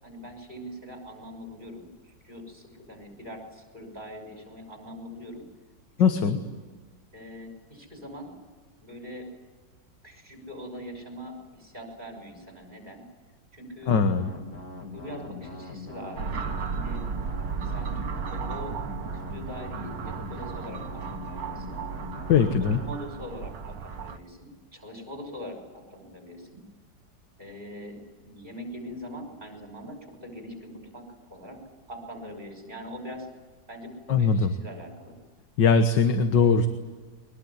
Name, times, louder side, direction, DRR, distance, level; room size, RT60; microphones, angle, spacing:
voice 1, 0.0-1.9 2.2-5.4 6.0-6.4 7.1-8.3 8.8-9.3 10.0-13.0 13.5-13.9 14.8-17.0 17.7-18.0 18.3-18.8 19.1-21.8 22.8-26.6 27.4-31.0 31.3-31.6 31.9-33.3 33.7-35.1, equal, 25° right, 4 dB, 6.2 m, -42 dB
voice 2, 6.0-6.4 13.9-14.3 22.3-22.8 34.1-34.5 35.6-36.7, left 5 dB, 65° left, 8 dB, 1.9 m, -20 dB
sound 1, 13.9-22.9, left 2 dB, 50° left, 3.3 m, -41 dB
sound 2, 16.2-24.2, right 6 dB, 70° right, 2.0 m, -35 dB
22.5 x 21.0 x 9.7 m, 1.4 s
omnidirectional pair, 2.1 m